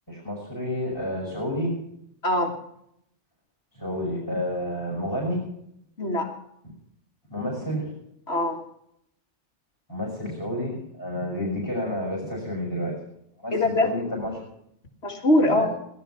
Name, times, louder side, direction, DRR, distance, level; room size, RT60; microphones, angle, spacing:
voice 1, 0.1-1.7 3.8-5.4 7.3-7.9 9.9-13.0 13.4-14.4 15.4-15.7, left 1 dB, 15° left, -3 dB, 6.0 m, -30 dB
voice 2, 2.2-2.5 6.0-6.3 8.3-8.6 13.5-13.9 15.0-15.7, left 1 dB, 60° left, 2 dB, 2.3 m, -22 dB
18.0 x 12.0 x 5.7 m, 0.74 s
omnidirectional pair, 1.3 m